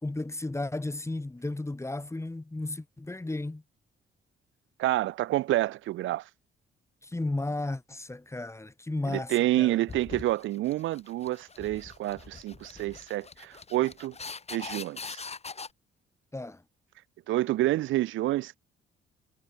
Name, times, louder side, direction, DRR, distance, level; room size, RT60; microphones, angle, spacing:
voice 1, 0.0-3.6 7.0-9.8 16.3-16.6, left 2 dB, 15° left, 3.0 m, -34 dB
voice 2, 4.8-6.3 9.1-14.1 14.5-15.2 17.3-18.6, right 15 dB, 80° right, 0.7 m, -28 dB
sound 1, 9.9-15.7, left 4 dB, 30° left, 6.1 m, -42 dB
cardioid pair, 90°, 20 cm